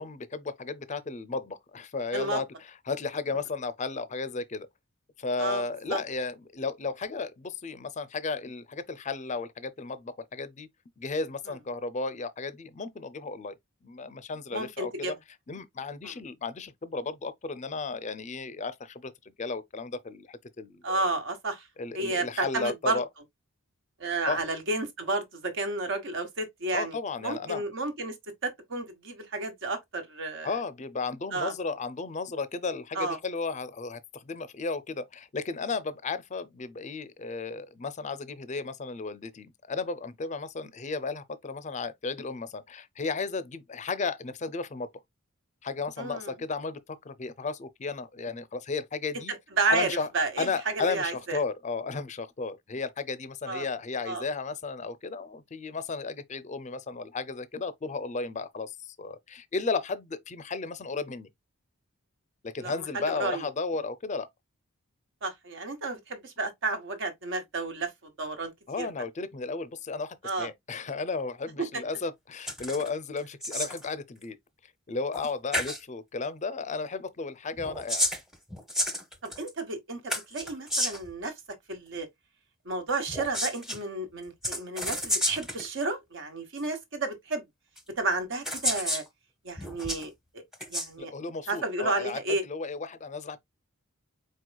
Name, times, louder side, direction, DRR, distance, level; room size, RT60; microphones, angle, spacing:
voice 1, 0.0-4.7 5.2-10.7 11.0-13.6 13.8-15.2 15.5-19.1 19.4-21.1 21.8-23.1 24.3-24.4 26.7-27.6 30.4-44.9 45.6-49.3 49.7-50.1 50.4-61.3 62.4-64.3 68.7-74.4 74.9-78.1 91.0-93.4, left 4 dB, 35° left, 0.5 m, -34 dB
voice 2, 14.5-15.1 16.0-16.1 20.8-21.6 21.9-23.0 24.0-27.0 27.2-28.1 28.4-30.5 31.3-31.5 32.9-33.2 46.0-46.3 49.6-49.9 50.1-51.4 53.5-53.7 54.1-54.2 62.6-63.4 65.2-67.9 68.2-68.5 68.8-68.9 70.2-70.5 71.6-71.8 79.2-81.3 81.7-82.1 82.6-87.4 88.0-89.0 89.4-90.4 90.7-91.1 91.5-92.4, right 3 dB, 60° right, 1.3 m, -31 dB
sound 1, 72.5-72.9 73.2-73.9 75.1-75.3 75.5-75.8 77.6-79.5 80.1-81.1 83.1-83.8 84.4-85.7 86.6-86.7 87.8-87.9 88.4-89.1 89.6-90.0 90.5-90.9, equal, ahead, 0.8 m, -31 dB
4.6 x 4.5 x 2.2 m
head